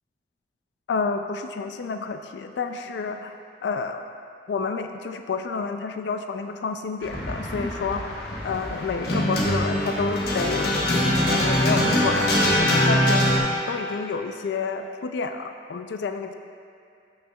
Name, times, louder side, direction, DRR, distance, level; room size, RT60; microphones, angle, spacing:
voice 1, 0.9-3.4 3.6-4.0 4.5-13.4 13.7-16.3, left 4 dB, 80° left, 7 dB, 0.3 m, -30 dB
sound 1, 7.0-13.4, left 1 dB, 60° left, 1.1 m, -23 dB
12.0 x 6.4 x 2.3 m, 2.5 s
head